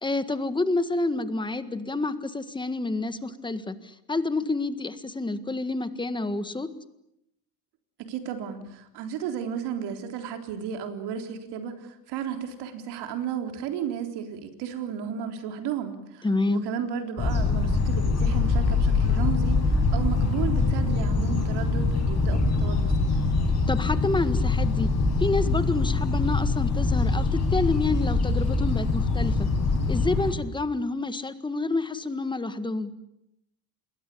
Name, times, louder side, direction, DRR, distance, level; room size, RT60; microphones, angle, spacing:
voice 1, 0.0-6.7 16.2-16.6 23.7-24.9 25.2-29.5 29.9-32.9, left 2 dB, 10° left, 12 dB, 1.7 m, -28 dB
voice 2, 8.0-23.1, right 8 dB, 85° right, 6 dB, 4.0 m, -33 dB
sound 1, 17.2-30.3, left 3 dB, 40° left, 7.9 m, -24 dB
27.0 x 21.5 x 8.6 m, 0.79 s
cardioid pair, 135°, 39 cm